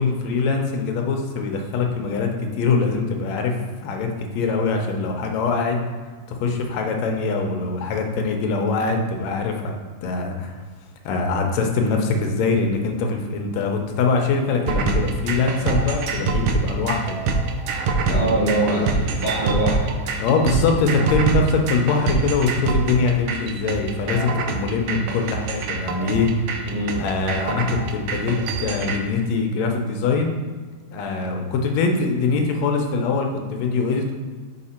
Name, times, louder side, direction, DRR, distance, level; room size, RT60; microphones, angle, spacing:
voice 1, 0.0-3.5 3.8-5.8 6.4-9.8 10.0-10.6 11.1-17.4 18.1-19.0 20.2-26.3 27.0-30.3 30.9-34.1, left 4 dB, 75° left, 3 dB, 1.8 m, -23 dB
sound 1, 14.7-29.0, right 4 dB, 90° right, 1.3 m, -25 dB
voice 2, 18.1-19.9 26.6-27.0, right 2 dB, 30° right, -9 dB, 1.2 m, -24 dB
5.0 x 4.7 x 4.2 m, 1.5 s
omnidirectional pair, 3.4 m